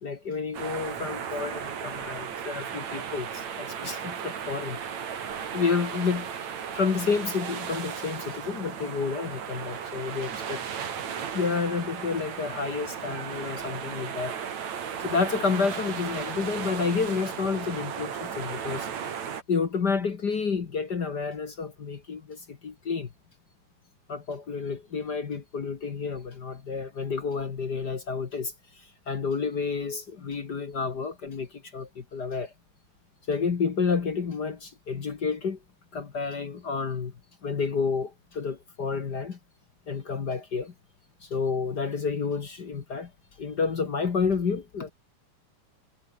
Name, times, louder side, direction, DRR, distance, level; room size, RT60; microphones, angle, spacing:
voice 1, 0.0-4.8 5.5-6.3 6.7-10.6 11.3-14.4 15.0-18.9 19.5-23.1 24.1-32.5 33.3-35.6 35.9-37.1 37.4-39.4 39.9-40.7 41.2-43.1 43.4-44.9, left 5 dB, 40° left, 1.5 m, -30 dB
sound 1, 0.5-19.4, right 7 dB, 60° right, 3.6 m, -35 dB
omnidirectional pair, 3.8 m